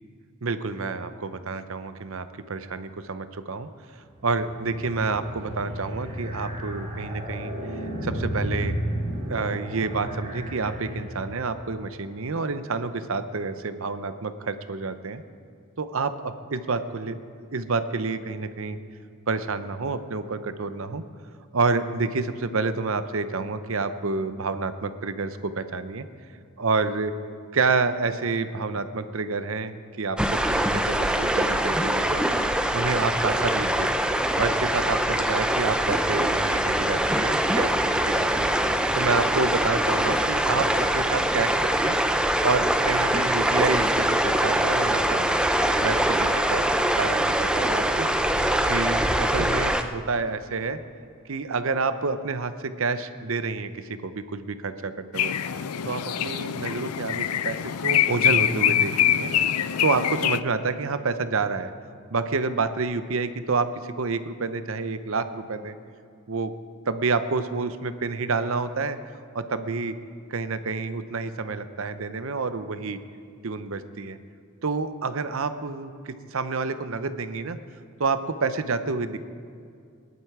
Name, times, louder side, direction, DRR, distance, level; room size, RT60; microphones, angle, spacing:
voice 1, 0.4-3.7 4.2-7.5 8.0-8.7 9.3-15.2 15.8-18.8 19.3-21.0 21.5-26.1 26.6-27.1 27.5-32.2 32.7-33.9 34.4-38.5 39.0-42.0 42.4-45.3 45.8-46.1 46.5-46.6 46.9-48.1 48.7-50.8 51.3-55.3 55.9-59.3 59.8-61.7 62.1-65.8 66.3-66.5 66.9-69.0 69.3-69.9 70.3-73.0 73.4-74.2 74.6-77.6 78.0-79.2, right 4 dB, 65° right, 11 dB, 0.7 m, -28 dB
sound 1, 4.1-11.6, equal, 25° right, 2.0 m, -33 dB
sound 2, 30.2-49.8, right 1 dB, 5° right, 0.5 m, -23 dB
sound 3, 55.1-60.4, left 10 dB, 90° left, 0.5 m, -24 dB
19.5 x 11.0 x 4.8 m, 2.3 s
head